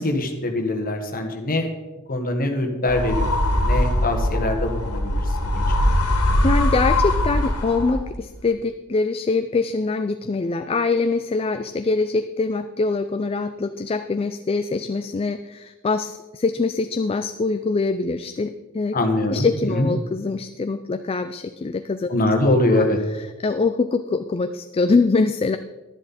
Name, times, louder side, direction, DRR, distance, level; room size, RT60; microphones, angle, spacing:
voice 1, 0.0-1.7 2.1-5.2 5.5-5.9 18.9-19.9 22.1-23.0, left 1 dB, 40° left, 4 dB, 1.5 m, -23 dB
sound 1, 2.9-8.2, left 1 dB, 80° left, 1.9 m, -21 dB
voice 2, 6.4-18.9 19.3-22.1 22.8-25.6, left 3 dB, 25° left, 9 dB, 0.4 m, -24 dB
11.0 x 11.0 x 4.2 m, 1.1 s
head